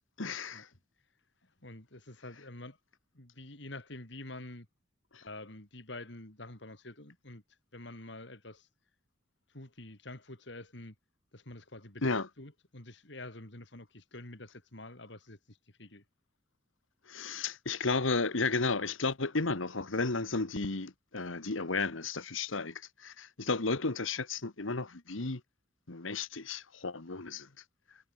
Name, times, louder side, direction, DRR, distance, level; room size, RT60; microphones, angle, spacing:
voice 1, 0.2-0.7 5.1-5.2 12.0-12.3 17.1-25.4 25.9-27.5, left 3 dB, 85° left, 1.7 m, -33 dB
voice 2, 1.4-2.8 3.1-4.7 5.2-8.7 9.5-11.0 11.3-16.0, left 2 dB, 65° left, 3.5 m, -47 dB
head